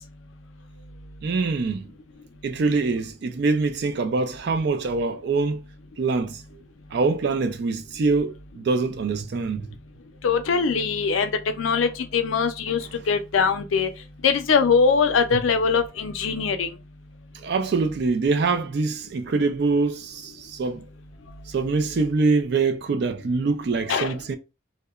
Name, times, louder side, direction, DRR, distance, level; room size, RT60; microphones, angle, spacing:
voice 1, 1.2-1.9 2.4-5.6 6.0-6.4 6.9-9.6 15.3-15.4 17.3-20.9 21.5-24.4, right 4 dB, 55° right, 0.4 m, -24 dB
voice 2, 10.2-11.3 11.6-13.9 14.2-16.7 23.9-24.1, left 5 dB, 85° left, 0.4 m, -22 dB
2.8 x 2.1 x 2.3 m
head